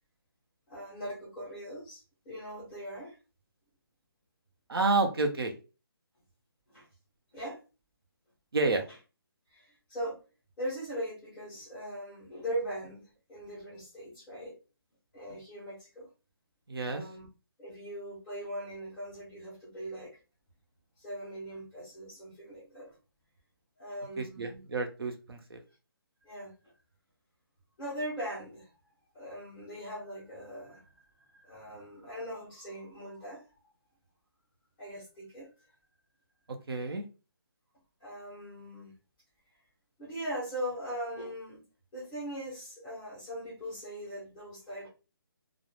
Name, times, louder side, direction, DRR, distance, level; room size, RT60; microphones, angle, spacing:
voice 1, 0.7-3.2 6.7-6.9 7.3-7.6 9.5-10.2 10.6-14.6 15.1-16.0 16.9-17.3 17.6-20.2 21.0-22.9 23.8-24.6 26.2-26.5 27.8-28.7 29.1-31.1 31.3-33.4 34.8-35.5 38.0-38.9 40.0-41.6 41.9-44.9, equal, 5° left, -10 dB, 0.5 m, -40 dB
voice 2, 4.7-5.5 8.5-8.9 16.7-17.0 24.2-25.6 36.5-37.0, right 3 dB, 75° right, 4 dB, 0.7 m, -30 dB
2.2 x 2.0 x 3.0 m, 0.32 s
hypercardioid pair, 175°, 13 cm